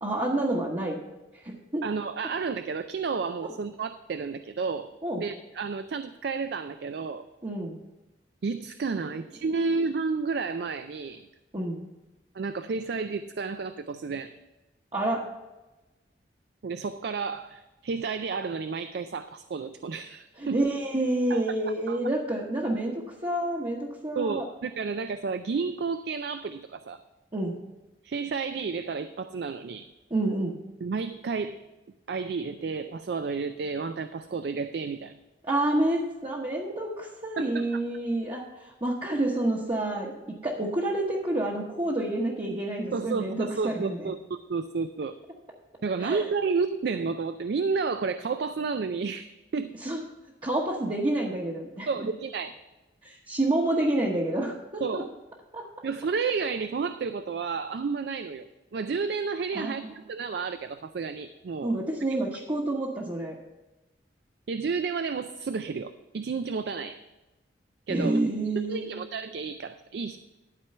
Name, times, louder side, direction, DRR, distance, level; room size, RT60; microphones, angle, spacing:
voice 1, 0.0-1.0 1.4-1.8 3.4-3.5 5.0-5.2 7.4-7.8 11.5-11.8 14.9-15.2 20.4-24.4 27.3-27.6 30.1-30.6 35.4-40.1 40.4-44.1 46.0-46.2 49.8-50.0 50.4-51.9 53.0-55.0 55.5-55.7 59.5-59.9 61.6-63.3 67.9-69.0, right 1 dB, 30° right, -4 dB, 1.1 m, -28 dB
voice 2, 1.8-7.2 8.4-11.3 12.3-14.4 16.6-20.6 21.3-21.4 21.9-22.0 24.2-27.0 28.0-29.9 30.8-31.6 32.1-35.1 37.4-37.8 42.9-45.2 45.8-49.8 51.9-52.5 54.8-55.1 55.8-58.5 58.7-61.7 64.5-67.0 67.9-68.2 68.7-70.2, right 4 dB, 65° right, 10 dB, 0.4 m, -31 dB
12.0 x 4.6 x 6.6 m, 1.1 s
head